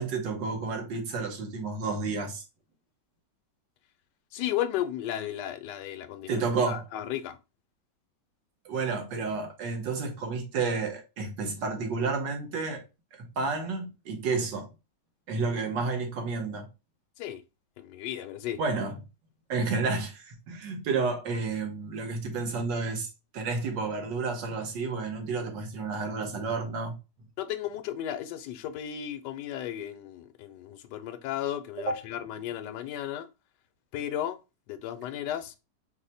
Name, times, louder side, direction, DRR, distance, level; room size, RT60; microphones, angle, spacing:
voice 1, 0.0-2.4 6.3-6.8 8.6-12.8 13.1-14.7 15.3-16.7 18.6-19.0 19.5-23.1 23.3-27.0 31.8-32.0, right 4 dB, 75° right, 1.6 m, -31 dB
voice 2, 4.3-6.4 6.7-7.4 17.2-17.4 17.8-18.6 27.4-33.3 33.9-34.4 34.7-35.5, left 11 dB, 75° left, 1.2 m, -34 dB
4.8 x 2.1 x 4.1 m
omnidirectional pair, 2.0 m